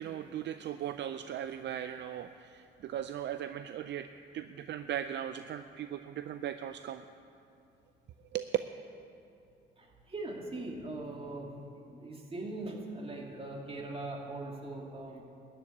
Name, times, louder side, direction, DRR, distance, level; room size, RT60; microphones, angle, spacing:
voice 1, 0.0-4.1 4.3-7.0 8.3-8.5, right 10 dB, 65° right, 10 dB, 0.5 m, -38 dB
voice 2, 9.8-11.5 11.9-15.2, right 2 dB, 30° right, -1 dB, 2.6 m, -41 dB
12.5 x 7.5 x 9.8 m, 2.6 s
cardioid pair, 90°, 20 cm